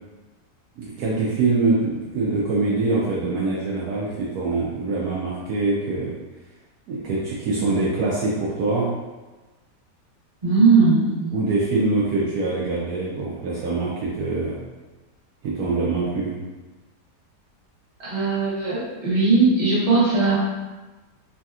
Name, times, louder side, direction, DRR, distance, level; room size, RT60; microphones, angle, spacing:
voice 1, 0.8-6.2 6.9-8.9 11.3-14.6 15.4-16.4, right 3 dB, 70° right, -5 dB, 1.0 m, -24 dB
voice 2, 10.4-11.3 18.0-20.4, right 4 dB, 30° right, -9 dB, 0.8 m, -19 dB
3.2 x 2.7 x 2.3 m, 1.2 s
omnidirectional pair, 1.8 m